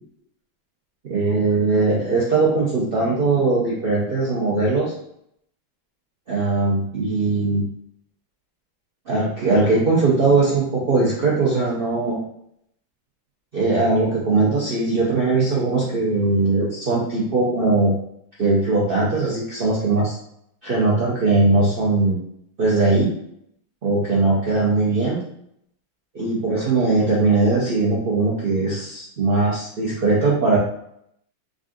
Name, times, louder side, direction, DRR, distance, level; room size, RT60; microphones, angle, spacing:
voice 1, 1.1-4.9 6.3-7.6 9.1-12.2 13.5-17.9 18.4-20.1 20.6-22.2 22.6-23.1 23.8-25.2 26.1-30.6, right 3 dB, 70° right, -6 dB, 0.5 m, -20 dB
3.8 x 2.6 x 3.6 m, 0.72 s
omnidirectional pair, 2.1 m